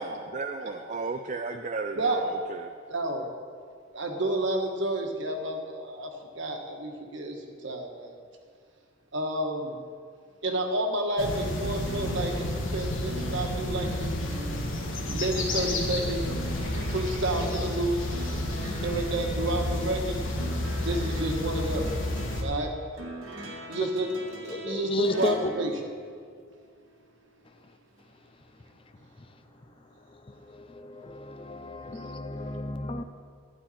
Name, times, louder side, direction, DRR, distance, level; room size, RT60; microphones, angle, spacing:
voice 1, 0.0-2.7, right 3 dB, 35° right, 0.4 m, -34 dB
voice 2, 2.9-3.3 3.9-7.4 7.6-8.2 9.1-9.8 10.4-14.2 15.1-16.2 16.9-18.3 18.8-20.2 20.8-21.9 22.4-22.7 23.7-24.1 24.4-25.7, right 1 dB, 65° right, 1.5 m, -30 dB
sound 1, 11.2-22.4, left 1 dB, 75° left, 1.8 m, -31 dB
sound 2, 11.8-26.8 28.0-28.1, right 1 dB, 85° right, 1.8 m, -43 dB
voice 3, 24.5-25.5 30.5-33.0, left 3 dB, 25° left, 0.5 m, -32 dB
12.5 x 9.9 x 4.2 m
head